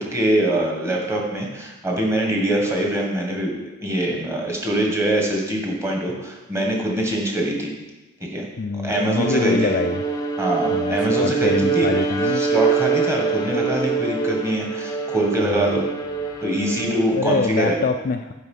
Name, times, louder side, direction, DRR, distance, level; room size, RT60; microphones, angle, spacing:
voice 1, 0.0-7.7 8.2-8.5 8.7-9.5 10.4-12.0 12.4-15.8 16.4-17.8, right 1 dB, 15° right, 0 dB, 1.4 m, -23 dB
voice 2, 8.6-10.0 10.7-12.4 15.4-15.8 17.1-18.3, left 4 dB, 40° left, 7 dB, 0.3 m, -24 dB
Bowed string instrument, 8.9-17.3, right 5 dB, 20° left, 0.7 m, -24 dB
8.1 x 5.1 x 5.5 m, 1.1 s
head